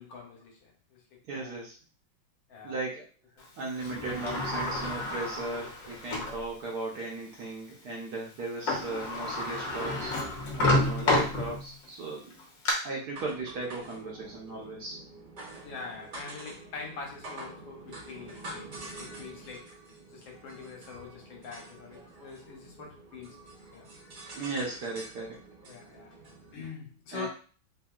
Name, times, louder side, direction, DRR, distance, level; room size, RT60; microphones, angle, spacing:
voice 1, 0.0-1.6 2.5-2.8 3.4-3.5 15.6-19.8 20.1-23.9 25.6-27.3, left 5 dB, 75° left, 0 dB, 1.6 m, -44 dB
voice 2, 1.3-1.8 2.6-3.0 3.6-10.1 10.6-12.3 12.8-15.0 24.3-25.4 27.1-27.3, right 3 dB, 65° right, -2 dB, 1.1 m, -36 dB
Sliding door, 3.8-6.4 7.0-7.1 8.4-8.5 8.7-11.8 12.3-12.7, left 2 dB, 60° left, 1.1 m, -30 dB
sound 1, 13.1-26.5, right 2 dB, 50° right, 1.3 m, -47 dB
3.4 x 2.7 x 2.3 m, 0.39 s
omnidirectional pair, 2.2 m